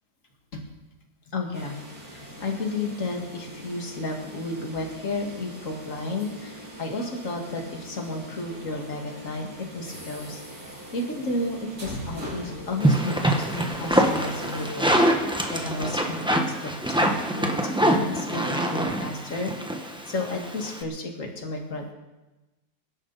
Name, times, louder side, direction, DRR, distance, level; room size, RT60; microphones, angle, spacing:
voice 1, 1.3-14.9 15.2-19.5 19.8-21.9, left 2 dB, 50° left, 1 dB, 2.6 m, -32 dB
sound 1, 1.5-15.1, equal, 75° right, 7.0 m, -41 dB
sound 2, 12.8-20.8, right 1 dB, 5° right, 1.2 m, -24 dB
23.0 x 12.0 x 4.2 m, 1.1 s
omnidirectional pair, 1.8 m